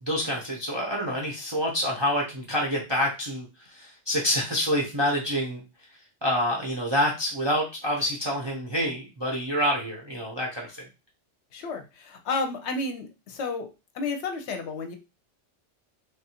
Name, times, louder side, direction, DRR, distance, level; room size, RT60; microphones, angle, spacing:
voice 1, 0.0-5.6 6.2-10.9, equal, 35° right, -3 dB, 0.5 m, -27 dB
voice 2, 11.5-13.7 13.9-15.0, left 3 dB, 70° left, 6 dB, 0.8 m, -31 dB
3.2 x 2.3 x 2.8 m, 0.28 s
omnidirectional pair, 1.3 m